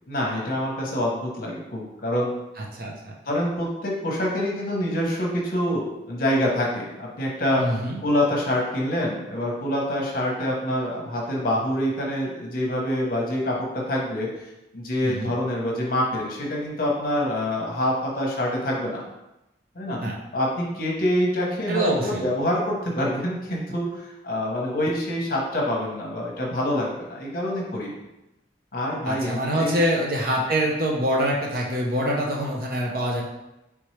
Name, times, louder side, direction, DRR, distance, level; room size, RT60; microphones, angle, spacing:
voice 1, 0.1-2.3 3.3-7.6 8.0-14.4 14.7-19.0 19.7-20.0 20.3-27.9 28.7-29.8, left 1 dB, 50° left, -2 dB, 0.8 m, -26 dB
voice 2, 2.6-3.1 7.6-8.0 15.0-15.3 20.0-20.1 21.7-22.2 29.0-33.2, equal, 50° right, -2 dB, 0.6 m, -25 dB
4.3 x 3.5 x 3.2 m, 0.95 s
head